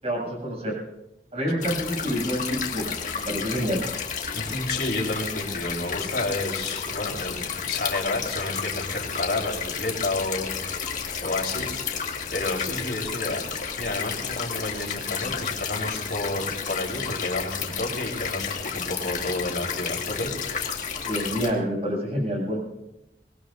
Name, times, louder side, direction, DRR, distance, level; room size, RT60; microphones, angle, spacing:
voice 1, 0.0-0.8 1.3-3.0 3.3-3.8 21.1-22.6, equal, 35° right, -2 dB, 7.7 m, -27 dB
sound 1, 1.6-21.5, left 6 dB, 45° left, 2.0 m, -32 dB
voice 2, 4.3-10.7 11.2-11.7 12.3-20.3, left 2 dB, 65° left, -1 dB, 4.4 m, -30 dB
24.5 x 20.5 x 2.7 m, 0.92 s
head